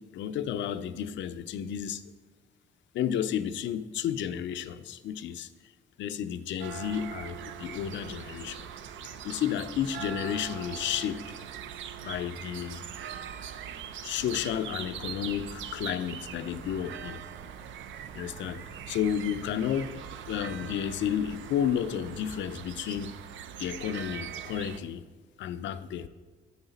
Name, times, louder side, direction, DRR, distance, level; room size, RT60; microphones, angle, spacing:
voice 1, 0.0-2.1 2.9-5.5 6.0-8.7 9.2-11.2 12.0-12.8 14.0-17.2 18.1-20.0 20.3-23.2 23.6-25.0 25.4-26.1, left 9 dB, 70° left, 12 dB, 0.4 m, -32 dB
sound 1, 6.6-24.8, right 9 dB, 75° right, 0.5 m, -42 dB
sound 2, 6.7-22.0, right 2 dB, 30° right, 0.6 m, -56 dB
7.9 x 4.9 x 4.0 m, 1.4 s
cardioid pair, 90°, 20 cm